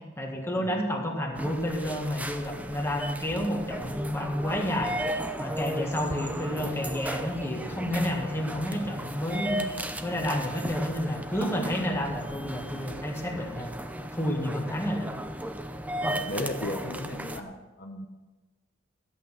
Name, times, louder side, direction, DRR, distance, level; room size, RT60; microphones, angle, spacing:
voice 1, 0.2-4.9 5.4-13.7 14.1-15.1, equal, 15° left, 0 dB, 1.7 m, -30 dB
sound 1, 1.4-17.4, equal, 10° right, 0.6 m, -35 dB
voice 2, 16.0-18.1, left 1 dB, 50° left, 3 dB, 0.9 m, -36 dB
13.0 x 8.5 x 5.8 m, 1.2 s
head